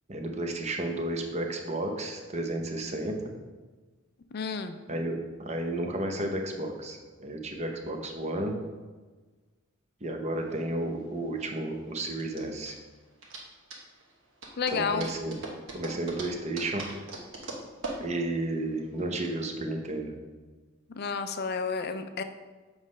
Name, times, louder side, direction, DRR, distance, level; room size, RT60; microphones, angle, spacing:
voice 1, 0.1-3.3 4.9-8.6 10.0-12.8 14.7-15.4 15.7-16.8 18.0-20.2, right 1 dB, 30° right, 3 dB, 0.7 m, -32 dB
voice 2, 4.3-4.7 14.6-15.1 20.9-22.2, left 5 dB, 45° left, 9 dB, 0.4 m, -31 dB
sound 1, 10.4-19.3, right 2 dB, 60° right, 1.2 m, -42 dB
7.4 x 3.2 x 5.2 m, 1.3 s
head